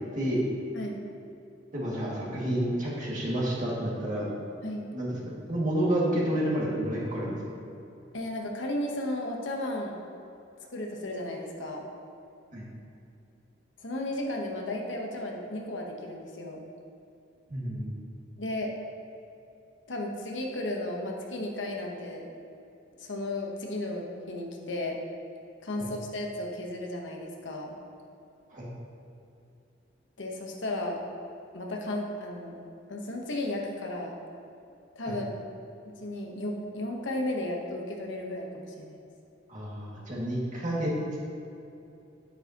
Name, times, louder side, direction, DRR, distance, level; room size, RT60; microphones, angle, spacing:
voice 1, 0.1-0.4 1.7-4.3 4.9-7.4 12.5-12.6 17.5-17.9 25.8-25.9 28.5-28.7 35.1-35.2 39.5-41.2, right 1 dB, 40° right, -6 dB, 2.1 m, -30 dB
voice 2, 8.1-9.9 10.7-11.8 13.8-16.6 18.4-18.7 19.9-22.3 23.0-25.0 25.6-27.8 30.2-31.0 31.5-32.6 32.9-34.1 34.9-35.4 36.0-39.0, left 1 dB, 70° left, 0 dB, 1.1 m, -34 dB
9.8 x 8.8 x 2.9 m, 2.7 s
head